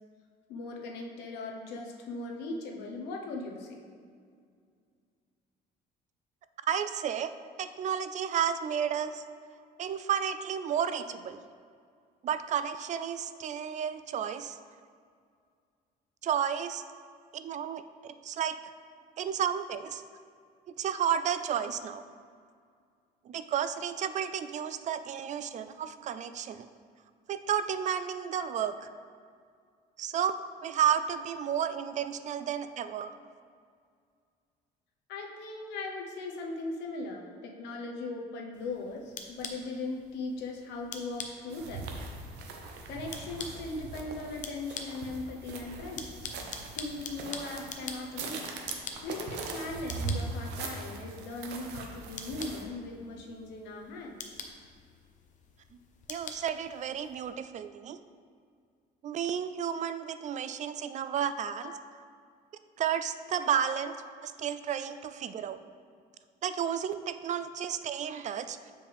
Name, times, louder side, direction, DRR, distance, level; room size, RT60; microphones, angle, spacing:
voice 1, 0.5-3.8 19.7-19.8 28.3-28.4 28.8-28.9 35.1-41.9 42.9-46.3 46.7-48.5 49.0-54.2 61.4-61.8, left 2 dB, 85° left, 1 dB, 1.0 m, -39 dB
voice 2, 6.7-7.3 7.6-9.2 9.8-11.4 12.2-14.6 16.2-16.8 17.3-18.7 19.2-20.0 20.8-22.0 23.3-26.7 27.3-28.9 30.0-30.4 30.6-33.1 56.1-58.0 59.0-61.7 62.8-64.0 64.2-65.6 66.4-68.7, right 8 dB, 45° right, 11 dB, 0.4 m, -32 dB
sound 1, 38.5-57.3, left 5 dB, 50° left, 0.8 m, -46 dB
sound 2, 41.5-52.6, right 4 dB, 85° right, 0.9 m, -40 dB
8.6 x 5.2 x 3.4 m, 2.2 s
cardioid pair, 110°, 17 cm